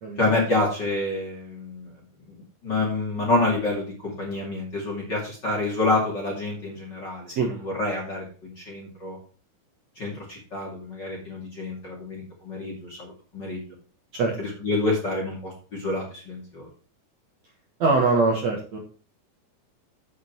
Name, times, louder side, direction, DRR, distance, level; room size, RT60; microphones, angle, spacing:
voice 1, 0.2-1.9 2.2-9.2 10.0-13.6 14.4-16.7, left 2 dB, 30° left, -2 dB, 2.2 m, -28 dB
voice 2, 17.8-18.8, right 3 dB, 60° right, 0 dB, 2.0 m, -22 dB
8.5 x 7.9 x 4.5 m, 0.38 s
omnidirectional pair, 5.2 m